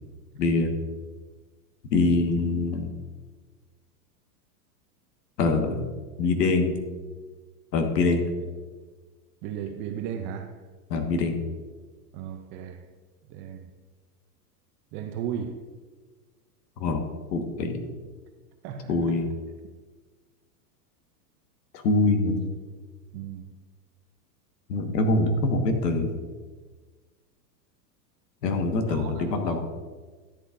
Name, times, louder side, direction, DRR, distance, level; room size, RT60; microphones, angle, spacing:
voice 1, 0.3-0.8 1.9-2.9 5.4-5.8 6.2-6.8 7.7-8.3 10.9-11.4 16.8-17.0 17.3-17.8 18.9-19.3 21.7-22.4 24.7-26.2 28.4-29.6, left 3 dB, 80° left, 1.5 m, -24 dB
voice 2, 9.4-10.6 12.1-12.9 13.3-13.7 14.9-15.6 18.6-19.2 23.1-23.6 28.9-29.6, right 8 dB, 25° right, 0.4 m, -36 dB
13.0 x 8.0 x 2.5 m
hypercardioid pair, 120°, 48 cm